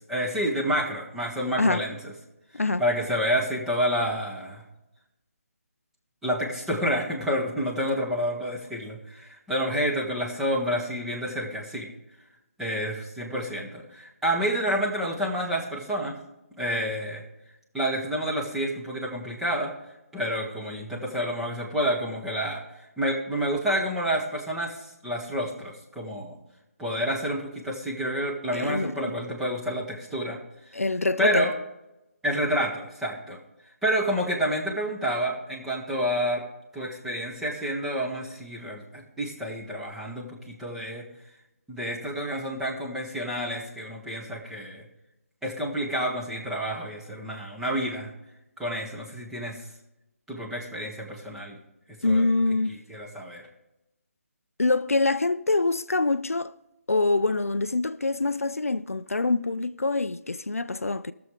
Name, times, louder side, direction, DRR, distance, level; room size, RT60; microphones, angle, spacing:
voice 1, 0.1-2.1 2.8-4.6 6.2-11.9 12.6-16.1 16.6-17.2 17.7-19.7 20.1-22.6 23.0-26.4 26.8-30.4 30.7-30.8 31.2-31.5 32.2-33.4 33.8-36.4 36.7-41.0 41.7-44.8 45.4-48.1 48.6-49.6 50.3-51.6 52.0-52.3 52.7-53.5, equal, 5° right, 1.1 m, -29 dB
voice 2, 28.5-29.1 30.7-31.5 52.0-52.8 54.6-56.5 56.9-61.1, left 3 dB, 70° left, 0.4 m, -25 dB
18.5 x 6.8 x 3.5 m
figure-of-eight pair, 150°, 8 cm